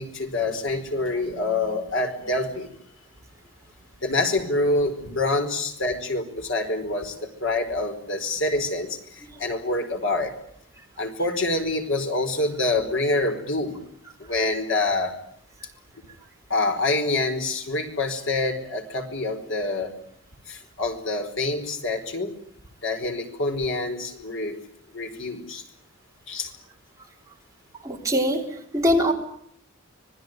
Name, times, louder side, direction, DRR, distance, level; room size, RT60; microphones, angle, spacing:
voice 1, 0.0-2.7 4.0-10.3 11.0-13.8 14.2-15.2 16.5-19.9 20.5-22.3 22.8-24.6 24.9-25.6 26.3-26.5, left 2 dB, 65° left, 5 dB, 4.7 m, -26 dB
voice 2, 27.8-28.4 28.7-29.1, equal, 15° right, 0 dB, 3.6 m, -21 dB
26.0 x 20.5 x 9.3 m, 0.67 s
head